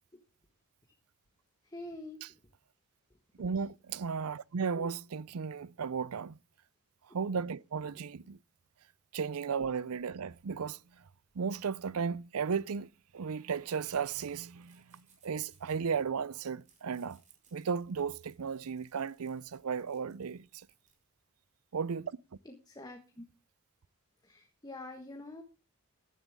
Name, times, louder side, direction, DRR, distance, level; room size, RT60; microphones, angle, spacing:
voice 1, 1.6-2.4 3.1-3.6 4.7-4.9 7.9-8.1 22.4-23.2 24.2-25.4, left 2 dB, 20° left, 1.5 m, -47 dB
voice 2, 3.4-6.4 7.1-8.4 9.1-11.0 11.3-17.2 17.5-20.7 21.7-22.1, right 6 dB, 85° right, 0.5 m, -35 dB
sound 1, 10.4-21.1, right 5 dB, 35° right, 4.7 m, -70 dB
15.5 x 11.5 x 3.6 m
head